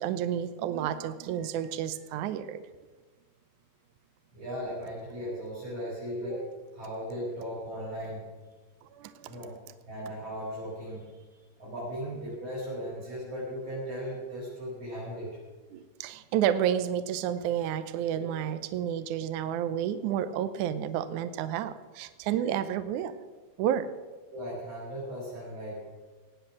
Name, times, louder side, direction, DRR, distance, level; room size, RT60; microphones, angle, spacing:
voice 1, 0.0-2.6 8.9-9.4 15.7-23.1 23.6-23.9, right 10 dB, 80° right, 11 dB, 1.7 m, -30 dB
voice 2, 4.3-8.3 9.3-9.6 9.9-11.2 11.6-15.4 18.2-18.3 24.3-25.9, equal, 40° right, -8 dB, 6.3 m, -37 dB
18.5 x 9.1 x 6.3 m, 1.3 s
omnidirectional pair, 4.4 m